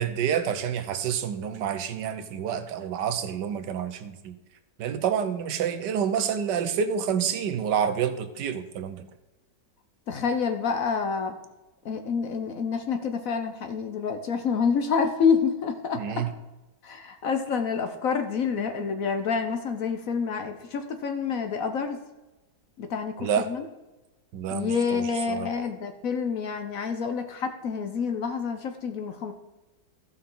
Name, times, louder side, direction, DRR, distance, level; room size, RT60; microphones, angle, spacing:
voice 1, 0.0-4.3 4.8-9.0 15.9-16.3 23.2-23.5 24.3-25.5, right 8 dB, 75° right, 1.4 m, -28 dB
voice 2, 10.1-11.3 11.8-16.3 16.8-22.0 22.8-23.6 24.5-29.3, left 6 dB, 60° left, 1.1 m, -28 dB
15.0 x 5.6 x 3.8 m
omnidirectional pair, 1.9 m